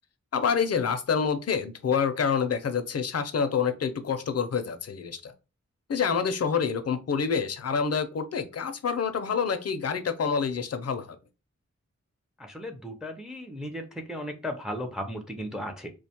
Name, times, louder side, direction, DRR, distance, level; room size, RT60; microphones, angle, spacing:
voice 1, 0.3-5.3 5.9-11.2, left 6 dB, 55° left, 9 dB, 0.5 m, -27 dB
voice 2, 12.4-15.9, equal, ahead, 6 dB, 0.4 m, -36 dB
2.4 x 2.2 x 2.8 m, 0.30 s
wide cardioid pair, 50°, 31 cm